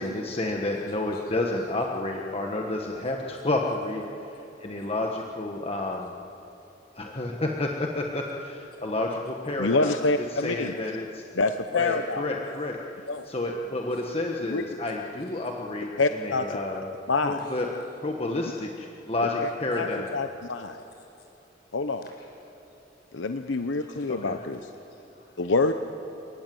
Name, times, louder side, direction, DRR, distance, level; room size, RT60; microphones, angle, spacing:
voice 1, 0.0-6.1 6.9-9.9 10.3-11.2 11.7-12.8 13.3-16.9 17.2-17.7 18.0-20.2 24.1-24.4, left 2 dB, 30° left, 0 dB, 1.4 m, -30 dB
voice 2, 0.7-1.3 4.8-4.9 7.1-7.4 10.5-10.6 13.0-13.3 13.8-14.2 14.8-15.5 17.4-17.8 18.1-18.2 19.7-20.0 20.2-20.4 20.7-21.5 21.9-22.5 23.4-25.5, left 4 dB, 60° left, 1 dB, 6.0 m, -59 dB
voice 3, 9.6-10.8 11.4-12.2 13.1-13.3 14.5-14.6 16.0-16.5 17.1-17.4 19.4-19.5 19.8-19.9 20.1-20.8 21.7-22.0 23.1-24.7 25.4-25.7, left 3 dB, 90° left, 7 dB, 0.9 m, -26 dB
30.0 x 18.5 x 7.8 m, 2.9 s
head